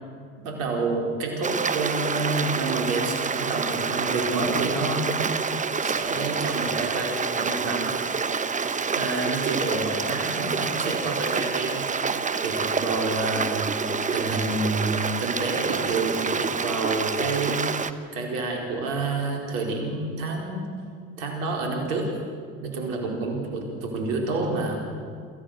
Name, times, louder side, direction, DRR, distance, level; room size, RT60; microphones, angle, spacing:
voice 1, 0.4-5.1 5.8-7.9 8.9-11.8 12.4-13.6 14.1-17.6 18.1-20.7 21.2-22.1 22.6-24.8, right 3 dB, 70° right, 1 dB, 4.8 m, -28 dB
Stream, 1.4-17.9, right 5 dB, 20° right, 1.0 m, -27 dB
27.0 x 14.5 x 6.8 m, 2.1 s
hypercardioid pair, 75°, 41 cm